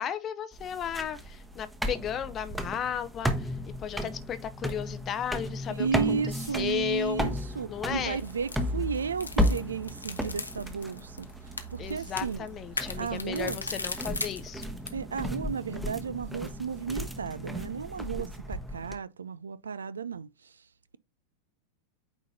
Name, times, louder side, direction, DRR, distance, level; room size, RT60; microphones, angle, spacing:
voice 1, 0.0-6.2 6.6-7.3 7.7-8.2 11.8-14.6, left 9 dB, 30° left, 0.6 m, -34 dB
sound 1, 0.5-18.9, equal, 5° right, 1.0 m, -34 dB
voice 2, 5.8-11.3 11.7-12.5 13.0-13.6 14.9-20.3, right 6 dB, 70° right, 0.4 m, -33 dB
sound 2, 8.0-15.0, left 3 dB, 80° left, 0.8 m, -39 dB
9.0 x 4.0 x 2.7 m
figure-of-eight pair, 90°, 0 cm